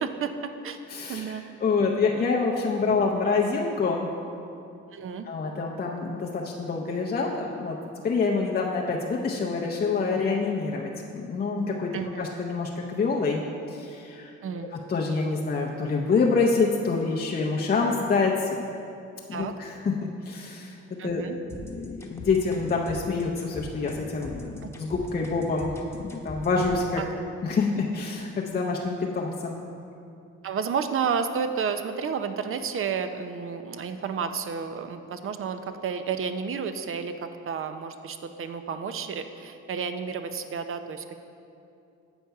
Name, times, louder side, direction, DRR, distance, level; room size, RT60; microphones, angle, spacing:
voice 1, 0.0-0.8 1.1-1.4 1.8-1.9 2.8-3.0 4.9-5.3 11.9-12.3 14.4-14.7 19.3-19.5 21.0-21.4 27.0-27.1 30.4-41.2, right 6 dB, 45° right, 9 dB, 0.5 m, -31 dB
voice 2, 0.9-4.1 5.3-7.8 8.0-11.9 12.2-13.4 13.7-14.3 14.9-18.6 19.3-20.8 21.0-21.2 21.7-25.7 26.0-27.0 27.4-29.6, left 4 dB, 30° left, -1 dB, 0.6 m, -26 dB
sound 1, 21.5-26.9, left 2 dB, 10° left, 1.0 m, -40 dB
8.0 x 5.2 x 4.6 m, 2.7 s
cardioid pair, 90°, 30 cm